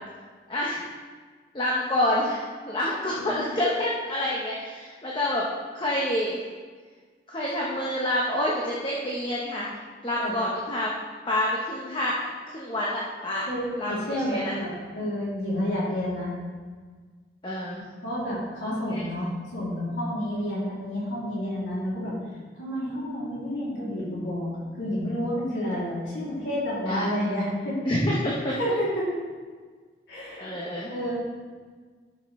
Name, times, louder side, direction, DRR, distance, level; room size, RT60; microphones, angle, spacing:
voice 1, 0.5-0.8 1.5-5.5 5.7-6.4 7.3-9.7 10.0-10.9 11.3-13.4 13.8-14.5 17.4-17.9 18.9-19.0 26.9-27.2 27.8-28.6 30.4-30.9, left 1 dB, 25° left, -4 dB, 1.0 m, -28 dB
voice 2, 3.1-3.5 10.2-10.3 13.5-16.3 18.0-22.2 22.6-27.8 28.6-29.1 30.1-30.5 30.9-31.1, equal, 80° left, -8 dB, 3.0 m, -30 dB
12.5 x 6.6 x 3.2 m, 1.5 s
head